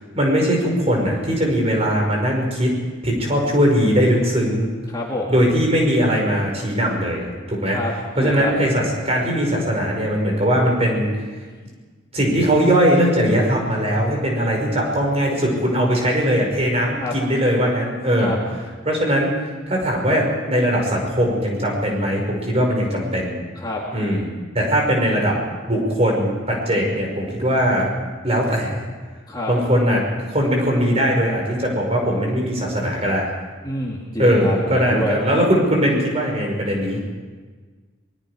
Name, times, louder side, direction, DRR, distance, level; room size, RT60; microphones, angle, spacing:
voice 1, 0.1-2.7 3.0-4.7 5.3-7.8 8.2-11.1 12.1-18.4 18.9-19.4 19.7-23.4 23.9-25.4 25.7-27.9 28.2-28.8 29.5-30.1 30.3-33.3 34.2-37.0, equal, 30° right, 0 dB, 5.3 m, -20 dB
voice 2, 4.9-5.3 7.7-7.9 8.2-8.5 14.4-14.6 17.0-17.1 18.2-18.4 23.6-23.8 29.3-29.5 33.6-35.2, left 1 dB, 20° left, -2 dB, 2.4 m, -27 dB
27.5 x 21.0 x 5.0 m, 1.4 s
head